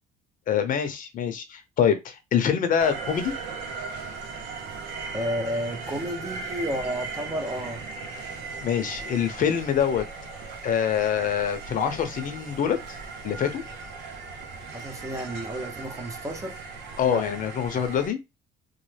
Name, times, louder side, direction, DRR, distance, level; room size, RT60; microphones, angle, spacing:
voice 1, 0.5-3.3 8.2-10.0 10.3-12.8 13.2-13.6 17.0-18.2, left 8 dB, 50° left, 0.7 m, -25 dB
sound 1, 2.8-18.1, right 4 dB, 80° right, 0.7 m, -38 dB
voice 2, 5.1-7.8 14.7-16.6 17.0-17.2, equal, 20° right, 0.6 m, -31 dB
3.1 x 2.1 x 3.3 m
cardioid pair, 110°, 17 cm